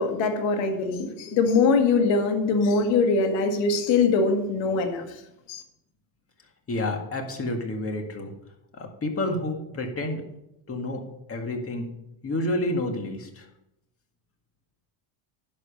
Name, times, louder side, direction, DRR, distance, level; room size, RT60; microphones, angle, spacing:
voice 1, 0.0-5.0 5.5-5.6, left 4 dB, 70° left, 5 dB, 1.9 m, -22 dB
voice 2, 6.7-8.3 8.7-10.2 10.7-11.0 11.3-11.9 12.2-13.5, left 1 dB, 30° left, 3 dB, 2.0 m, -29 dB
10.5 x 7.1 x 5.3 m, 0.85 s
cardioid pair, 130°, 47 cm